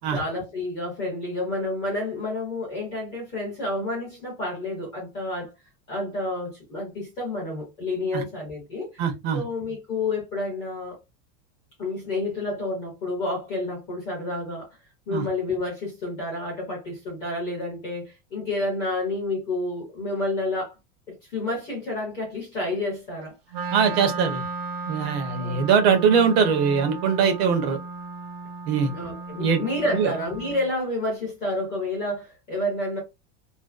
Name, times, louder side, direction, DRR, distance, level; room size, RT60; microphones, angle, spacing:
voice 1, 0.1-5.5 5.9-9.0 9.3-11.0 11.8-14.7 15.1-20.7 21.1-23.4 25.4-26.0 28.9-33.0, left 2 dB, 15° left, 0.4 m, -29 dB
voice 2, 9.0-9.4 15.1-15.2 23.7-24.4 24.9-27.8 28.7-28.9 29.4-29.6 29.9-30.1, right 6 dB, 45° right, 0.6 m, -21 dB
Wind instrument woodwind instrument, 23.5-30.7, right 3 dB, 90° right, 0.8 m, -35 dB
2.5 x 2.2 x 2.3 m
supercardioid pair, 170°, 45 cm